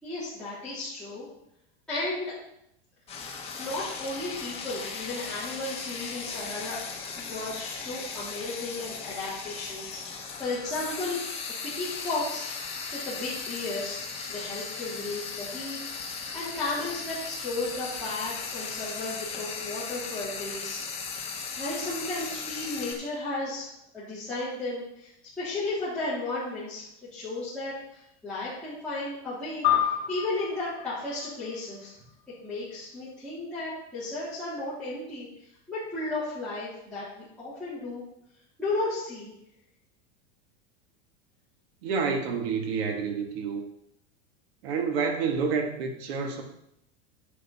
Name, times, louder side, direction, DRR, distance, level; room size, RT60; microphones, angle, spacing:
voice 1, 0.0-1.3 1.9-2.3 3.6-6.8 7.2-20.8 21.2-25.1 25.4-26.8 27.1-31.9 32.4-35.3 35.7-38.0 38.6-39.3, left 2 dB, 5° left, -15 dB, 3.6 m, -34 dB
Frying (food), 3.1-22.9, left 5 dB, 20° left, 1.5 m, -37 dB
sound 1, 29.6-32.4, left 10 dB, 35° left, 2.4 m, -30 dB
voice 2, 41.8-43.6 44.6-46.4, right 5 dB, 70° right, 4 dB, 2.0 m, -28 dB
10.5 x 8.3 x 4.3 m, 0.79 s
supercardioid pair, 155°, 32 cm